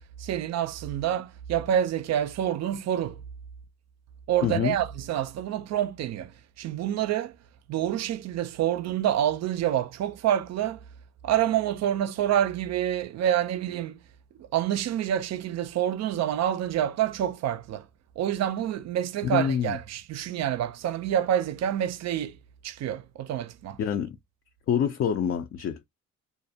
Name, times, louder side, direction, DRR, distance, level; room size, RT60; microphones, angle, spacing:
voice 1, 0.2-3.2 4.3-7.4 7.7-10.8 11.2-14.0 14.4-17.9 18.2-22.4 22.6-23.8, right 11 dB, 60° right, 0.4 m, -27 dB
voice 2, 4.4-4.8 19.2-19.8 23.8-24.2 24.7-25.9, left 8 dB, 45° left, 0.4 m, -26 dB
2.4 x 2.1 x 2.6 m
cardioid pair, 90°, 30 cm